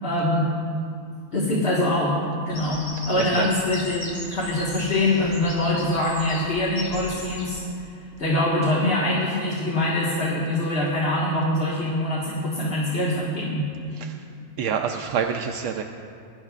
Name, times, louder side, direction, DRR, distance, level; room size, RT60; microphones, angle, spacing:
voice 1, 0.0-0.5 1.3-2.2 2.5-7.6 8.2-13.7, left 1 dB, 55° left, -5 dB, 1.8 m, -24 dB
Bird vocalization bird call bird song, 2.5-7.6, left 1 dB, 90° left, 4.2 m, -38 dB
voice 2, 3.2-3.5 13.9-14.2 14.6-15.8, right 7 dB, 85° right, 4 dB, 0.9 m, -27 dB
23.0 x 11.5 x 2.4 m, 2.5 s
omnidirectional pair, 1.2 m